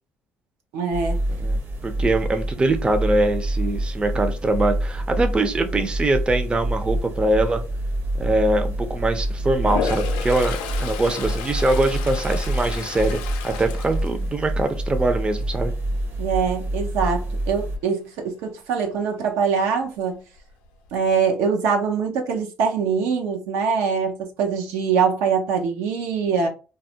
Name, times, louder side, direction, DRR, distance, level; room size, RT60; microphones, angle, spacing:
voice 1, 0.7-1.2 16.2-20.2 20.9-26.5, right 6 dB, 80° right, 0.6 m, -23 dB
sound 1, 0.9-17.8, right 1 dB, 50° right, 0.8 m, -27 dB
voice 2, 1.8-7.6 8.2-15.7, right 2 dB, 20° right, 0.5 m, -23 dB
Toilet flush, 9.6-14.8 15.2-15.5 20.0-20.1 20.4-21.1, left 7 dB, 85° left, 0.4 m, -32 dB
2.3 x 2.0 x 2.7 m
supercardioid pair, 70°, 5 cm